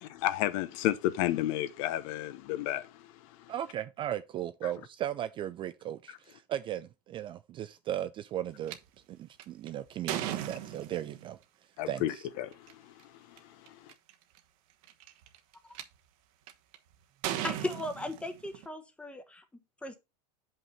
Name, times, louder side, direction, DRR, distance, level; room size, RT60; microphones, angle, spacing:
voice 1, 0.0-3.5 11.8-13.9, left 14 dB, 55° left, 0.8 m, -33 dB
voice 2, 3.5-8.8 9.1-11.4 11.9-12.2, right 11 dB, 25° right, 0.3 m, -36 dB
sound 1, 8.7-8.8 9.4-11.3 12.5-12.7 13.4-13.5 13.7-14.1 14.8-15.8 16.5-16.8 17.2-18.7, right 12 dB, 55° right, 1.1 m, -36 dB
voice 3, 17.4-20.0, left 1 dB, 5° left, 1.1 m, -37 dB
7.4 x 5.6 x 4.0 m
supercardioid pair, 140°, 21 cm